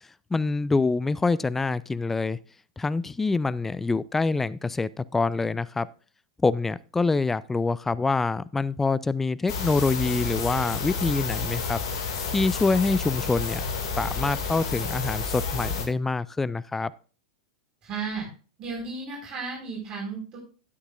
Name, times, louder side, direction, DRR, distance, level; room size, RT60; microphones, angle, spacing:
voice 1, 0.3-2.4 2.8-5.9 6.4-11.8 12.3-13.6 14.0-16.9, left 3 dB, 10° left, 19 dB, 0.4 m, -25 dB
sound 1, 9.5-15.9, left 5 dB, 60° left, 2.3 m, -30 dB
voice 2, 17.8-18.3 18.6-20.4, right 4 dB, 30° right, -2 dB, 4.7 m, -34 dB
12.5 x 9.9 x 2.5 m, 0.38 s
figure-of-eight pair, 90°, 3 cm